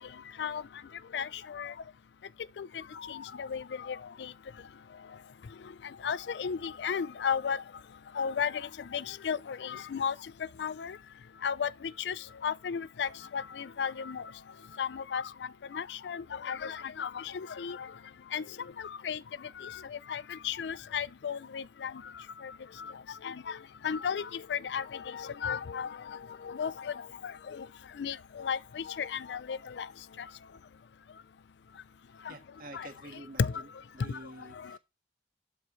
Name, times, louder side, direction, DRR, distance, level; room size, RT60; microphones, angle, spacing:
voice 1, 1.1-1.7 2.6-4.3 6.0-7.6 8.2-10.1 10.6-11.0 11.4-12.2 12.4-14.2 14.8-15.3 15.7-17.9 18.3-18.4 18.8-19.2 19.6-21.9 22.4-22.5 22.8-22.9 23.2-23.6 23.8-27.7 28.0-29.9 32.3-32.4 32.7-32.9 33.4-33.6 34.1-34.2, left 7 dB, 80° left, 0.4 m, -34 dB
voice 2, 32.3-33.7 33.9-34.8, right 1 dB, 50° right, 1.6 m, -48 dB
12.5 x 7.7 x 3.1 m
head